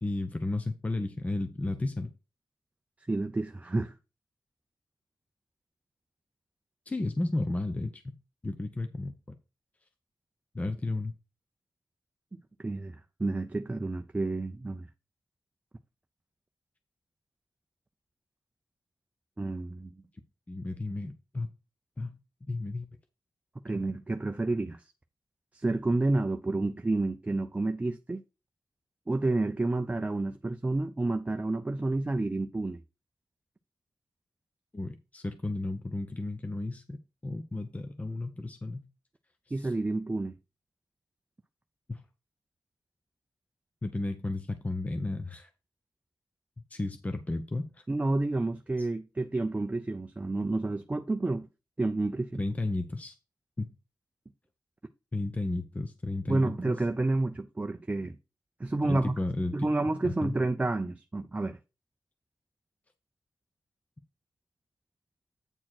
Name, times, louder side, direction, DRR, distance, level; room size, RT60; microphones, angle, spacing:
voice 1, 0.0-2.1 6.9-8.2 8.4-9.1 10.5-11.1 20.5-21.5 22.0-22.2 22.4-22.8 34.7-37.0 37.2-38.9 39.6-39.7 41.9-42.0 43.8-45.5 46.7-47.7 52.4-53.2 53.6-53.7 55.1-56.5 58.8-59.7 60.0-60.3, left 2 dB, 20° left, 0.8 m, -33 dB
voice 2, 3.1-3.9 12.6-14.9 19.4-19.9 23.6-24.8 25.5-28.2 29.1-32.8 39.5-40.3 47.9-51.5 51.8-52.4 56.3-58.2 58.6-59.1 59.5-61.6, right 2 dB, 20° right, 0.5 m, -30 dB
8.9 x 4.4 x 4.4 m
wide cardioid pair, 130°, 7 cm